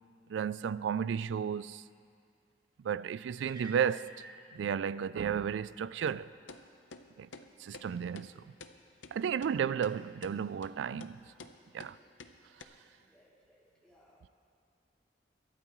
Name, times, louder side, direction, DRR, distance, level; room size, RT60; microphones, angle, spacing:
voice 1, 0.3-1.8 2.8-4.1 4.5-6.3 7.2-7.3 7.6-8.4 9.1-11.2 11.7-11.9, right 7 dB, 70° right, 0.3 m, -33 dB
sound 1, 3.3-4.5, right 3 dB, 25° right, 1.6 m, -50 dB
sound 2, 6.1-6.2 6.5-6.6 6.9-7.0 7.3-7.5 7.7-7.9 8.2-8.3 8.6-8.7 9.0-9.1 9.4-9.5 9.8-10.0 10.2-10.4 10.6-10.7 11.0-11.1 11.4-11.5 11.8-11.9 12.2-12.3 12.6-12.7, left 4 dB, 80° left, 0.7 m, -48 dB
voice 2, 9.1-9.6 13.0-14.2, equal, 5° left, 2.7 m, -63 dB
22.5 x 12.5 x 3.1 m
head